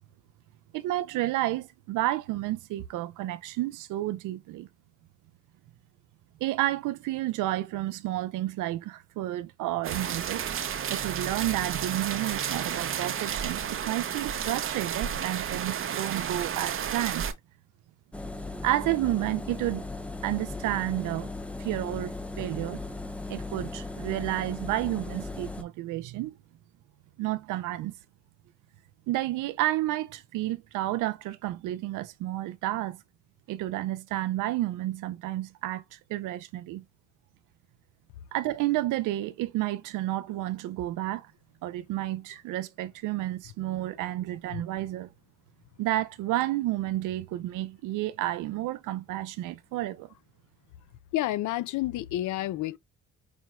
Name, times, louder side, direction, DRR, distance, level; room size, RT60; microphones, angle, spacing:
voice 1, 0.7-4.7 6.4-10.4 10.9-17.3 18.6-19.9 20.2-21.3 21.6-22.8 23.3-26.3 27.2-27.9 29.1-33.0 33.5-36.8 38.3-41.3 41.6-45.1 45.8-50.1, right 15 dB, 90° right, 0.5 m, -31 dB
sound 1, 9.8-17.3, right 8 dB, 45° right, 0.6 m, -32 dB
Engine, 18.1-25.6, left 2 dB, 5° left, 0.4 m, -37 dB
voice 2, 51.1-52.8, left 15 dB, 75° left, 0.5 m, -29 dB
4.9 x 2.2 x 3.0 m
cardioid pair, 90°, 30 cm